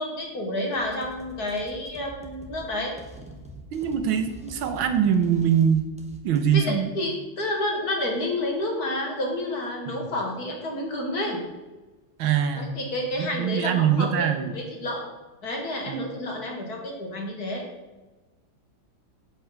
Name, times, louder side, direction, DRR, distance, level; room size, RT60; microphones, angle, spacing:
voice 1, 0.0-2.9 6.5-11.4 12.5-15.1 15.4-17.6, left 1 dB, 50° left, 1 dB, 2.5 m, -30 dB
sound 1, 0.7-6.6, right 1 dB, 5° right, 1.0 m, -45 dB
voice 2, 3.7-5.9 6.2-6.9 9.9-10.1 12.2-12.7 13.2-14.5 15.9-16.0, right 8 dB, 85° right, 8 dB, 1.8 m, -23 dB
8.0 x 7.9 x 5.9 m, 1.2 s
omnidirectional pair, 2.2 m